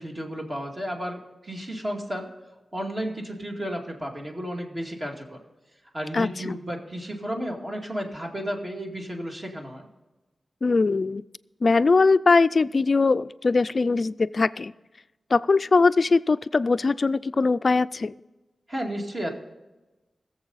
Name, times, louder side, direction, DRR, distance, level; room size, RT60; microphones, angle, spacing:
voice 1, 0.0-2.3 2.7-5.4 5.9-9.9 18.7-19.3, equal, 30° right, 0 dB, 2.2 m, -33 dB
voice 2, 6.1-6.6 10.6-11.2 11.6-14.7 15.3-18.1, left 4 dB, 45° left, 15 dB, 0.3 m, -21 dB
20.5 x 7.4 x 4.1 m, 1.1 s
wide cardioid pair, 115°, 0 cm